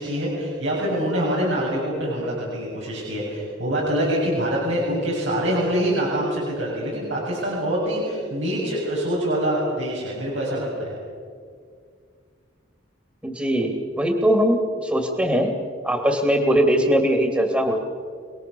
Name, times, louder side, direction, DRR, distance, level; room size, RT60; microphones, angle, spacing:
voice 1, 0.0-10.9, equal, 85° right, -5 dB, 7.6 m, -25 dB
voice 2, 13.2-15.5 15.8-17.8, equal, 10° right, 3 dB, 2.6 m, -21 dB
29.0 x 20.5 x 7.1 m, 2.1 s
head